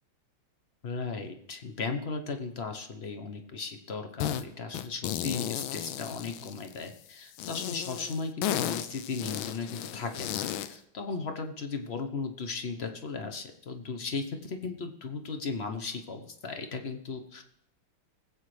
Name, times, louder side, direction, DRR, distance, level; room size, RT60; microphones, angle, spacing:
voice 1, 0.8-17.4, left 4 dB, 45° left, 5 dB, 0.8 m, -36 dB
sound 1, 4.2-4.4 4.7-6.9 7.4-10.8, left 11 dB, 80° left, 1.4 m, -34 dB
21.0 x 8.3 x 3.3 m, 0.73 s
omnidirectional pair, 2.3 m